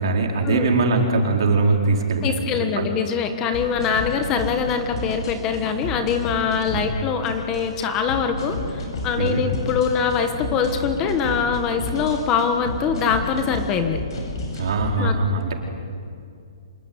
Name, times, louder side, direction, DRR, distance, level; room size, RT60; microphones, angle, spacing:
voice 1, 0.0-2.5 2.8-2.9 6.7-6.8 9.2-9.4 14.6-15.5, right 3 dB, 60° right, 1 dB, 4.5 m, -21 dB
voice 2, 2.2-14.0 15.0-15.2, left 6 dB, 15° left, 7 dB, 1.3 m, -23 dB
sound 1, 3.5-14.9, left 2 dB, 55° left, 7.8 m, -31 dB
26.0 x 20.0 x 9.7 m, 2.3 s
hypercardioid pair, 175°, 3 cm